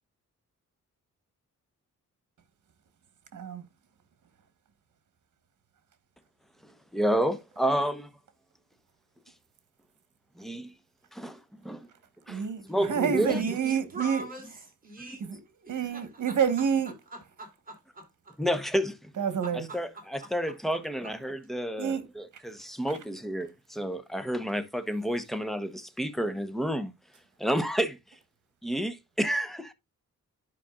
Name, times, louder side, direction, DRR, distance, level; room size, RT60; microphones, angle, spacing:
voice 1, 3.3-3.6 12.3-14.2 15.2-15.4 15.7-16.9 19.2-19.7 21.8-22.0, right 7 dB, 70° right, 1.6 m, -28 dB
voice 2, 6.6-8.1 10.4-10.7 11.1-11.9 12.3-12.4 12.7-13.6 18.4-19.1 19.7-19.9 20.3-26.9 27.4-28.0 28.6-29.7, equal, ahead, 1.0 m, -30 dB
voice 3, 13.1-15.3 15.7-16.4 17.1-18.4 19.4-21.1, right 2 dB, 25° right, 3.8 m, -44 dB
11.5 x 5.2 x 2.4 m
cardioid pair, 105°, 31 cm